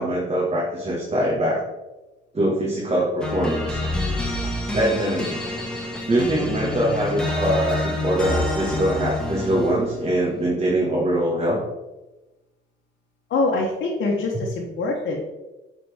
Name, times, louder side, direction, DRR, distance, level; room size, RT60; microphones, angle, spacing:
voice 1, 0.0-1.6 2.3-3.8 4.7-5.4 6.1-11.6, right 1 dB, 35° right, -5 dB, 1.7 m, -23 dB
sound 1, 3.2-9.9, left 2 dB, 5° left, 1.6 m, -27 dB
voice 2, 13.3-15.2, left 3 dB, 70° left, -2 dB, 1.1 m, -24 dB
7.0 x 4.3 x 3.5 m, 1.1 s
cardioid pair, 90°, 20 cm